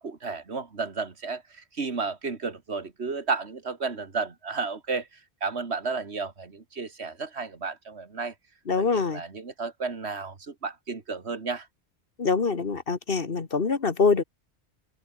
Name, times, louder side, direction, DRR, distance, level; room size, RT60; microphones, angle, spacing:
voice 1, 0.0-8.3 8.8-11.7, right 4 dB, 75° right, 2.3 m, -33 dB
voice 2, 8.7-9.2 12.2-14.2, left 4 dB, 55° left, 1.8 m, -24 dB
open air
omnidirectional pair, 1.1 m